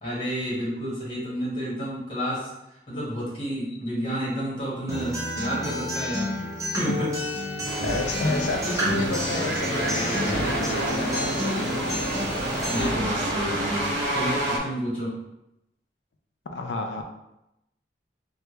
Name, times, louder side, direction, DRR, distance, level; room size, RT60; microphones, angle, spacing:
voice 1, 0.0-2.5 2.9-6.4 6.7-7.1 7.9-8.4 12.7-15.2, equal, 30° left, -8 dB, 1.3 m, -30 dB
Acoustic guitar, 4.9-12.9, left 1 dB, 20° right, 0.7 m, -30 dB
sound 1, 7.6-14.6, right 1 dB, 85° right, 0.7 m, -28 dB
voice 2, 7.8-12.0 16.5-17.0, left 2 dB, 80° left, 4 dB, 0.4 m, -31 dB
3.3 x 2.3 x 2.9 m, 0.88 s
head